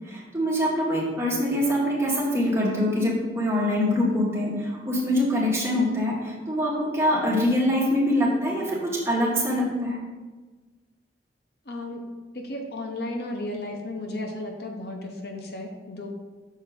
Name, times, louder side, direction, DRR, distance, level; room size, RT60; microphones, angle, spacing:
voice 1, 0.1-10.0, left 1 dB, 15° right, -5 dB, 1.7 m, -24 dB
voice 2, 11.7-12.0 12.3-16.1, left 1 dB, 60° left, 3 dB, 0.8 m, -34 dB
6.6 x 4.4 x 5.1 m, 1.3 s
head